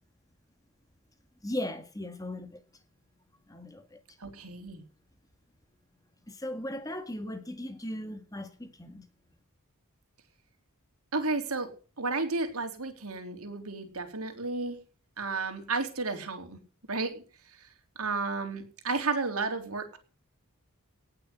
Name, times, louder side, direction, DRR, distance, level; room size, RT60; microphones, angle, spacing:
voice 1, 1.4-2.6 3.5-4.0 6.3-9.0, left 1 dB, 15° left, 1.7 m, -37 dB
voice 2, 4.2-4.8 11.1-11.7 12.0-14.8 15.2-16.6 16.9-17.2 17.6-17.7 17.9-20.0, right 3 dB, 80° right, 3.6 m, -32 dB
18.5 x 6.7 x 8.0 m
head